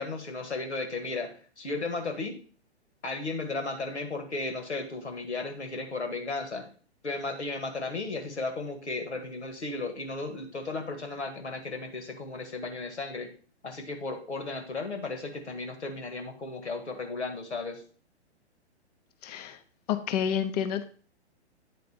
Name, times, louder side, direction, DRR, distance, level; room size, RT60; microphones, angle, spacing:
voice 1, 0.0-2.4 3.0-6.7 7.0-13.3 13.6-17.8, left 3 dB, 80° left, 6 dB, 1.8 m, -35 dB
voice 2, 19.2-19.6 19.9-20.9, left 9 dB, 35° left, 10 dB, 0.8 m, -29 dB
9.2 x 4.2 x 4.2 m, 0.42 s
figure-of-eight pair, 120°, 34 cm